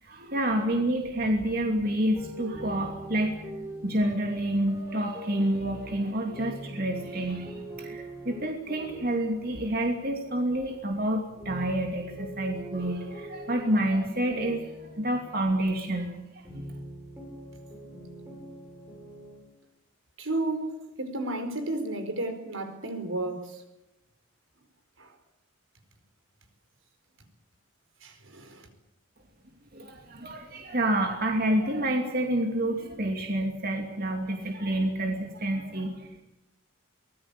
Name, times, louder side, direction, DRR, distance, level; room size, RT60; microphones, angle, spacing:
voice 1, 0.0-3.4 3.8-16.6 29.7-36.1, right 1 dB, 45° right, 2 dB, 2.7 m, -28 dB
sound 1, 2.1-11.1 11.3-15.9 16.4-19.4, right 1 dB, 15° right, 7.8 m, -43 dB
voice 2, 20.2-20.7 21.0-23.6 25.0-25.1 28.0-28.7, right 2 dB, 75° right, 7 dB, 4.6 m, -32 dB
24.0 x 19.0 x 8.4 m, 0.92 s
head